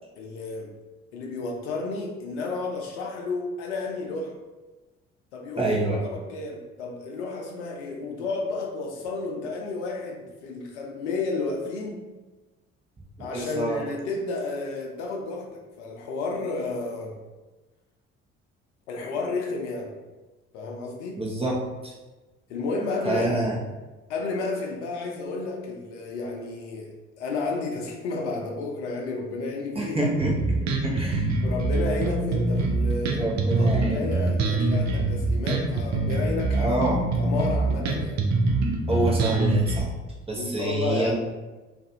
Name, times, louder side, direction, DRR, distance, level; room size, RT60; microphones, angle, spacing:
voice 1, 0.2-0.7 1.1-4.3 5.3-12.0 13.2-17.2 18.9-19.9 20.5-21.2 22.5-23.3 24.1-30.1 31.4-36.8 37.1-38.2 40.3-41.1, left 3 dB, 75° left, 0 dB, 0.6 m, -32 dB
voice 2, 5.6-6.0 13.2-13.8 21.2-21.6 21.8-21.9 23.0-23.6 29.7-31.3 33.1-34.1 36.5-37.0 38.9-39.9 40.3-41.1, right 1 dB, 15° right, -3 dB, 0.8 m, -27 dB
Bass guitar, 30.2-39.8, right 3 dB, 50° right, 0.6 m, -24 dB
2.4 x 2.3 x 2.7 m, 1.2 s
figure-of-eight pair, 50°, 35 cm